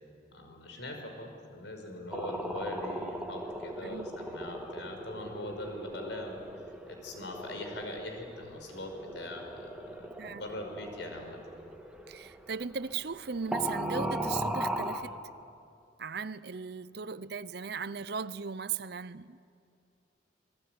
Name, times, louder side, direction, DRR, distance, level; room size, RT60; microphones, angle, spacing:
voice 1, 0.3-11.4, left 1 dB, 75° left, 5.4 m, -42 dB
sound 1, 2.1-13.3 13.5-15.1, equal, 5° right, 1.9 m, -38 dB
voice 2, 3.8-4.1 10.2-10.4 12.1-15.2 16.0-19.4, right 5 dB, 55° right, 0.7 m, -37 dB
28.0 x 22.0 x 9.5 m
head